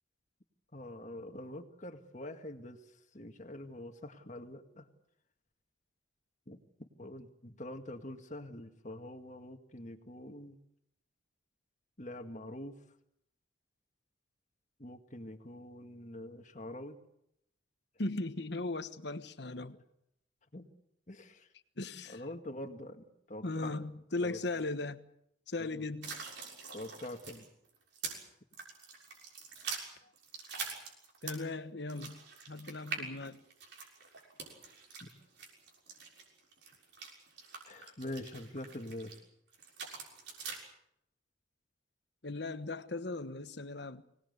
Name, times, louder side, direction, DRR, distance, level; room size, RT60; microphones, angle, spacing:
voice 1, 0.7-2.8 3.1-4.9 6.5-6.6 7.0-10.6 12.0-12.7 14.8-17.0 20.5-20.6 21.1-21.5 22.1-23.7 24.2-24.4 25.7-25.9 26.7-27.5 35.0-35.1 37.7-39.1, left 1 dB, 40° left, 2.0 m, -45 dB
voice 2, 18.0-19.8 21.8-22.2 23.4-25.1 25.5-26.2 31.2-33.4 42.2-44.0, left 2 dB, 55° left, 1.3 m, -38 dB
sound 1, 26.0-28.2 28.5-31.5 31.9-39.2 39.5-40.6, right 5 dB, 60° right, 6.5 m, -44 dB
25.0 x 19.0 x 8.1 m
head